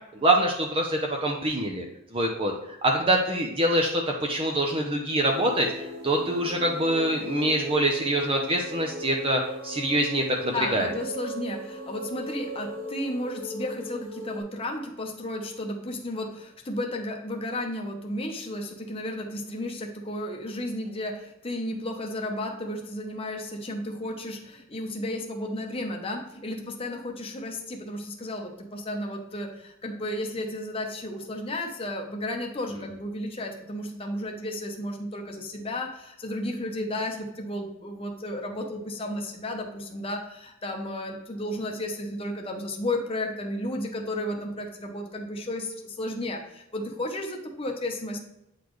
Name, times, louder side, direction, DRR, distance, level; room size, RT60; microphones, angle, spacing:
voice 1, 0.1-1.8 2.1-2.5 2.8-5.7 6.0-10.9, right 1 dB, 25° right, 1 dB, 0.7 m, -25 dB
sound 1, 5.2-14.4, right 1 dB, 85° right, 2.4 m, -37 dB
voice 2, 10.5-48.2, left 1 dB, 30° left, 2 dB, 0.8 m, -33 dB
8.3 x 4.2 x 3.1 m, 0.84 s
head